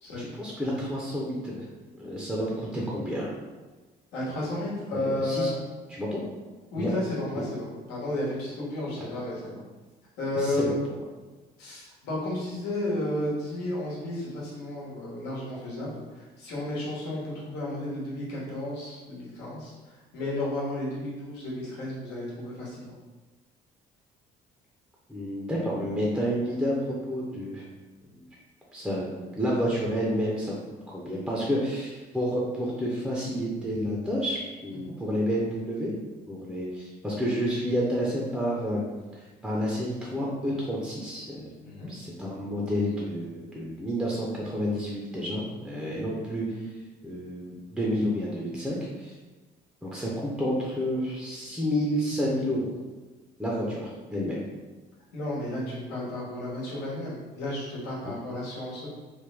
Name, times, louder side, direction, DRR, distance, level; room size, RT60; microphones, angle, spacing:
voice 1, 0.2-1.6 2.0-3.3 4.9-5.5 5.9-6.2 6.8-6.9 7.3-7.4 10.3-10.7 25.1-27.6 28.2-28.3 28.7-30.5 30.9-35.9 36.3-38.8 39.1-41.5 41.9-46.7 47.0-49.1 49.8-52.7 53.4-54.4, equal, 5° right, -4 dB, 0.5 m, -30 dB
voice 2, 4.1-5.6 6.7-9.6 10.2-10.8 11.6-19.7 20.1-22.9 34.8-35.0 41.6-41.9 55.1-58.9, left 1 dB, 90° left, -6 dB, 1.1 m, -32 dB
3.2 x 2.1 x 3.3 m, 1.2 s
cardioid pair, 110°, 17 cm